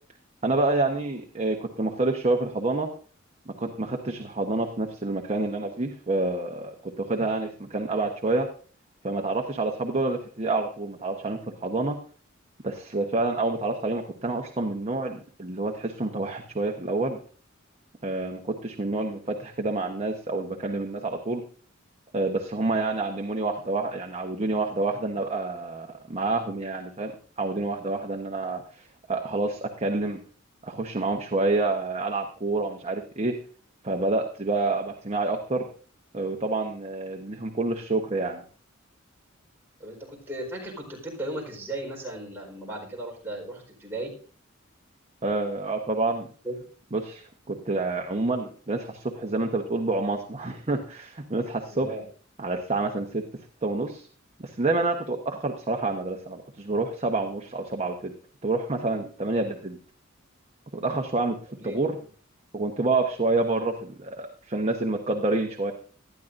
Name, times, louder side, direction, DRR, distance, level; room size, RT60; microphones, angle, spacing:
voice 1, 0.4-2.9 3.5-8.5 9.0-12.0 12.6-17.2 18.0-21.4 22.1-27.1 27.4-30.2 30.6-33.3 33.8-35.7 36.1-38.4 45.2-46.3 46.9-51.9 52.4-53.2 53.6-54.1 54.4-58.1 58.4-59.8 60.7-61.4 61.6-62.0 62.5-65.7, right 2 dB, 30° right, 2 dB, 1.1 m, -28 dB
voice 2, 39.8-44.1 46.4-46.6 51.7-52.0 61.5-62.0, right 1 dB, 10° right, -2 dB, 4.4 m, -36 dB
19.0 x 12.0 x 2.6 m, 0.41 s
head